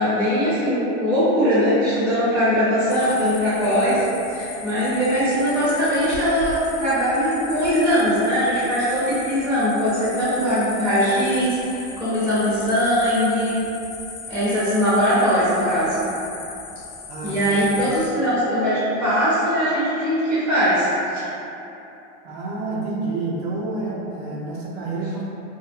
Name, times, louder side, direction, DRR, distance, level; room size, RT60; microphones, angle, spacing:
voice 1, 0.0-4.0 4.3-13.5 14.3-16.0 17.2-21.2, equal, 10° right, -12 dB, 0.4 m, -21 dB
sound 1, 2.9-18.1, left 5 dB, 65° left, 0.5 m, -38 dB
voice 2, 17.1-17.9 22.2-25.2, right 3 dB, 65° right, -4 dB, 0.5 m, -29 dB
2.6 x 2.3 x 2.4 m, 2.9 s
supercardioid pair, 155°, 34 cm